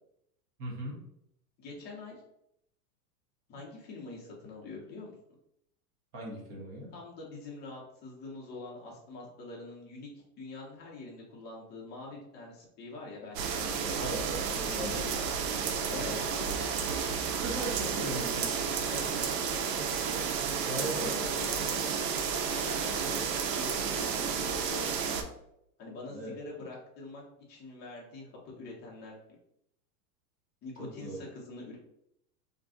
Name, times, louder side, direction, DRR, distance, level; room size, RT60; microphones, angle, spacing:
voice 1, 0.6-1.0 6.1-6.9 14.0-14.2 14.8-14.9 15.9-16.2 17.3-18.6 20.1-21.2 26.1-26.3 30.8-31.2, right 1 dB, 20° right, -2 dB, 0.4 m, -38 dB
voice 2, 1.6-2.2 3.5-5.2 6.9-10.1 10.4-15.2 15.9-16.6 18.9-19.2 20.7-25.2 25.8-29.2 30.6-31.8, left 3 dB, 20° left, -2 dB, 0.7 m, -45 dB
sound 1, 13.4-25.2, right 6 dB, 80° right, 0.7 m, -32 dB
2.5 x 2.2 x 3.6 m, 0.77 s
supercardioid pair, 145°, 49 cm